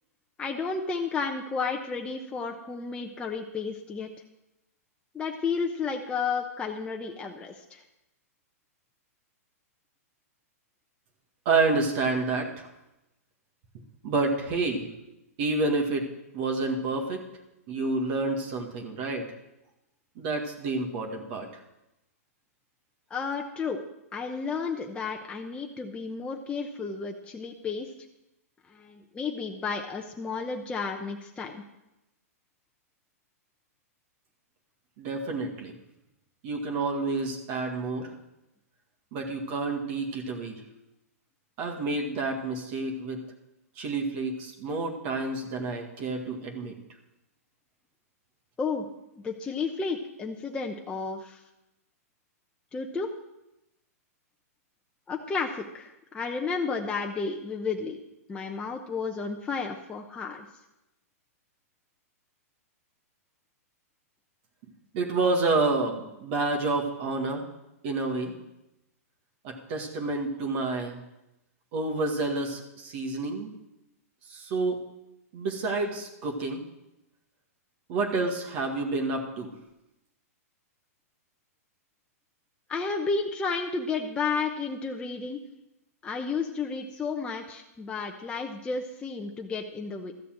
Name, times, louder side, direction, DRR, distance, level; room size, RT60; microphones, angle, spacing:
voice 1, 0.4-4.1 5.1-7.8 23.1-23.8 24.1-27.9 28.7-31.6 48.6-48.8 49.2-51.4 52.7-53.1 55.1-58.0 58.3-60.5 82.7-85.4 86.0-90.1, left 4 dB, 10° left, 1 dB, 0.9 m, -32 dB
voice 2, 11.5-12.7 14.0-14.9 15.4-17.3 17.7-19.3 20.2-21.5 35.0-35.7 36.4-38.1 39.1-40.6 41.6-43.2 43.8-46.7 64.9-67.4 67.8-68.3 69.4-71.0 71.7-73.5 74.3-74.8 75.3-76.6 77.9-79.5, right 3 dB, 45° right, 2 dB, 2.0 m, -29 dB
13.5 x 6.8 x 7.7 m, 0.91 s
hypercardioid pair, 135°, 8 cm